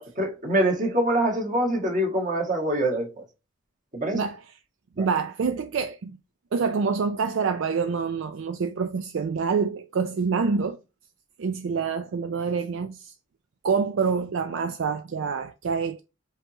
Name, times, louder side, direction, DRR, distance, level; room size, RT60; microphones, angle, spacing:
voice 1, 0.0-3.2 3.9-4.2 5.0-5.1, right 1 dB, 40° right, 1.5 m, -25 dB
voice 2, 5.0-6.2 6.5-10.8 11.4-13.1 13.6-16.0, right 5 dB, 75° right, 0.4 m, -26 dB
5.6 x 2.9 x 2.9 m
head